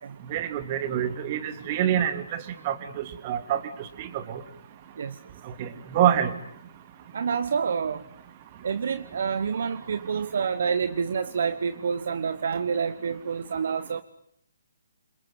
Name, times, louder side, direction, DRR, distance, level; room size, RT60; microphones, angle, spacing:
voice 1, 0.3-2.1 2.7-2.8 3.2-3.6 5.9-6.3, right 10 dB, 35° right, 9 dB, 3.1 m, -24 dB
voice 2, 7.1-8.0 8.6-14.0, right 6 dB, 60° right, 13 dB, 1.2 m, -28 dB
28.5 x 22.5 x 9.4 m, 0.71 s
figure-of-eight pair, 140°, 0 cm